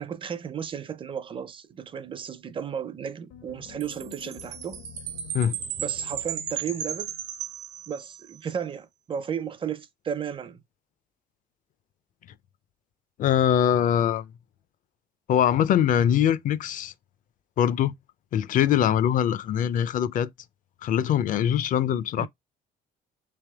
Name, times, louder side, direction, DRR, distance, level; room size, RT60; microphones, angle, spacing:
voice 1, 0.0-4.8 5.8-7.1 7.9-10.6 22.2-22.3, right 7 dB, 30° right, 0.5 m, -34 dB
sound 1, 3.3-7.6, left 9 dB, 90° left, 1.2 m, -48 dB
Chime, 3.8-8.3, right 9 dB, 85° right, 0.7 m, -35 dB
voice 2, 13.2-14.3 15.3-16.9 17.6-17.9 18.3-20.3 20.8-22.3, left 10 dB, 50° left, 0.4 m, -22 dB
3.4 x 3.2 x 3.4 m
cardioid pair, 110°, 17 cm